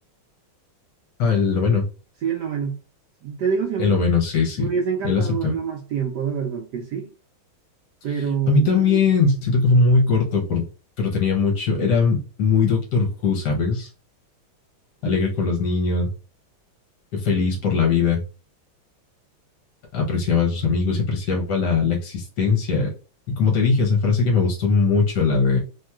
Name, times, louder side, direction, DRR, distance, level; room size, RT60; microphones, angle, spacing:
voice 1, 1.2-1.9 3.8-4.7 5.0-5.5 8.5-10.6 11.0-13.9 15.0-16.1 17.1-18.2 19.9-22.9 23.3-25.6, left 4 dB, 65° left, 1.2 m, -20 dB
voice 2, 2.2-2.8 3.2-4.0 4.6-7.1 8.0-9.1 15.0-15.2, right 7 dB, 75° right, 1.0 m, -26 dB
3.1 x 2.8 x 2.3 m
omnidirectional pair, 2.2 m